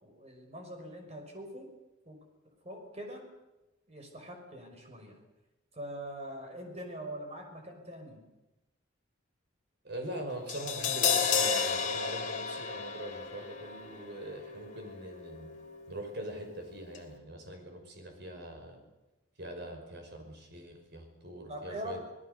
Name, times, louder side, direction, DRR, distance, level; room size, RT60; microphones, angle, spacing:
voice 1, 0.0-1.7 2.1-2.2 2.6-3.3 3.9-5.2 5.7-8.2 21.5-22.0, right 1 dB, 35° right, 3 dB, 5.6 m, -43 dB
voice 2, 9.8-15.5 15.9-18.8 19.4-22.0, right 1 dB, 55° right, 4 dB, 5.5 m, -42 dB
Crash cymbal, 10.5-16.6 16.9-17.0, left 6 dB, 40° left, 2.9 m, -33 dB
27.0 x 18.5 x 6.8 m, 1.0 s
head